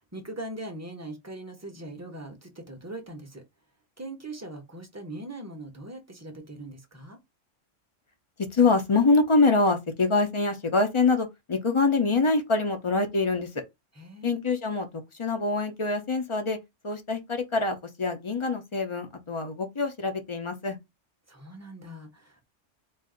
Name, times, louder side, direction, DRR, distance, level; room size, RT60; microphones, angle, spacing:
voice 1, 0.1-3.4 4.0-7.2 14.0-14.4 21.3-22.4, right 1 dB, 15° right, 0.7 m, -41 dB
voice 2, 8.5-13.5 14.2-16.6 16.8-20.8, left 3 dB, 35° left, 0.5 m, -25 dB
4.0 x 2.5 x 3.8 m
omnidirectional pair, 1.3 m